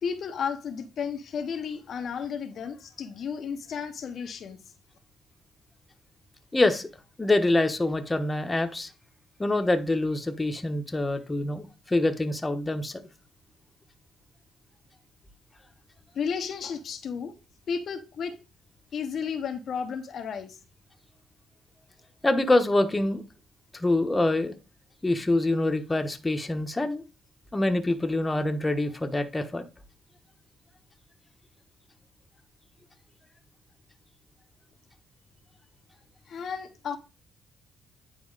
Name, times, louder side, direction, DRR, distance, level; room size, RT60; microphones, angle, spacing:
voice 1, 0.0-4.6 16.1-17.3 17.7-18.4 18.9-20.6 36.3-37.0, left 6 dB, 60° left, 0.9 m, -33 dB
voice 2, 6.5-6.9 7.2-8.9 9.4-13.0 22.2-23.2 23.7-24.5 25.0-27.0 27.5-29.7, left 2 dB, 20° left, 1.1 m, -25 dB
9.6 x 4.1 x 4.0 m
cardioid pair, 90°, 0 cm